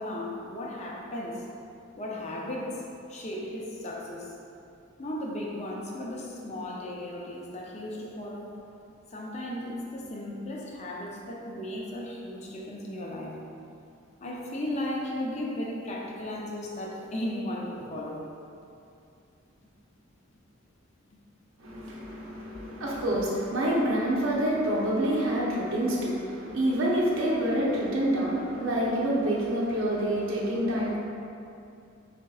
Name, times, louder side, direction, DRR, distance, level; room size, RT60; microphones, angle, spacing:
voice 1, 0.0-1.5 2.0-4.4 5.0-8.6 9.1-13.4 14.2-18.3, left 1 dB, 35° left, -2 dB, 0.5 m, -35 dB
voice 2, 21.6-31.0, right 1 dB, 85° right, -4 dB, 0.8 m, -27 dB
4.2 x 3.7 x 2.3 m, 2.6 s
head